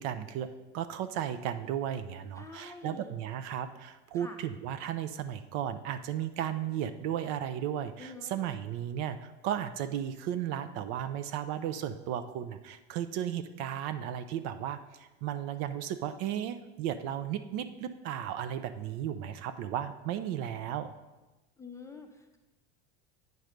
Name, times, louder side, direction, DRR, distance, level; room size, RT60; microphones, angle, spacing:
voice 1, 0.0-20.9, right 10 dB, 55° right, 11 dB, 0.5 m, -35 dB
voice 2, 2.4-3.1 4.1-4.4 8.0-8.4 21.6-22.4, left 3 dB, 10° left, 4 dB, 0.5 m, -47 dB
9.2 x 3.1 x 5.0 m, 1.1 s
supercardioid pair, 120°, 32 cm